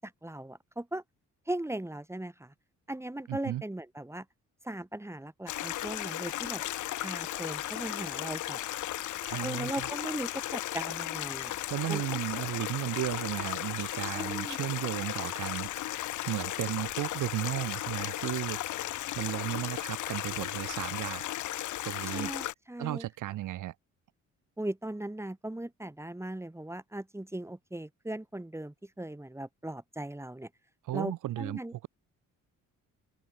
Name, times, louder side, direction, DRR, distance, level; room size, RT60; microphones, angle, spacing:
voice 1, 0.0-1.0 1.5-2.5 2.9-4.2 4.6-6.6 7.0-8.6 9.4-12.0 14.1-14.7 22.1-23.1 24.6-30.5 30.9-31.7, right 1 dB, 10° right, 6.5 m, -38 dB
voice 2, 3.3-3.6 9.2-9.9 11.7-15.7 16.3-18.9 19.1-21.2 21.8-22.3 22.8-23.7 30.8-31.9, right 14 dB, 85° right, 6.9 m, -34 dB
Stream, 5.5-22.5, left 14 dB, 75° left, 1.2 m, -35 dB
cardioid pair, 90°, 30 cm